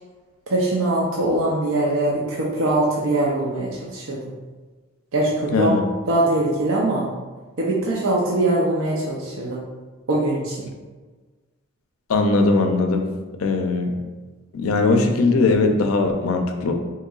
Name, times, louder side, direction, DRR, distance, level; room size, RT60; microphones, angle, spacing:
voice 1, 0.5-4.2 5.1-5.7 6.1-7.1 7.6-9.6 10.1-10.7, right 2 dB, 70° right, -3 dB, 0.5 m, -22 dB
voice 2, 5.5-5.8 12.1-13.1 13.4-14.0 14.5-16.7, left 3 dB, 80° left, 5 dB, 0.4 m, -19 dB
3.7 x 2.9 x 2.3 m, 1.3 s
head